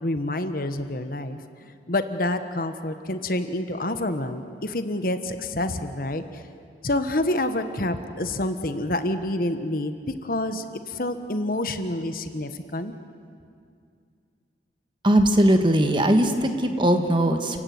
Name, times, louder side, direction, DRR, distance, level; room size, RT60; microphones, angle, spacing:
voice 1, 0.0-6.2 6.8-10.0 10.2-12.9, left 1 dB, 50° left, 9 dB, 1.3 m, -28 dB
voice 2, 15.0-17.6, right 1 dB, 25° right, 6 dB, 1.7 m, -20 dB
29.5 x 16.5 x 9.6 m, 2.3 s
head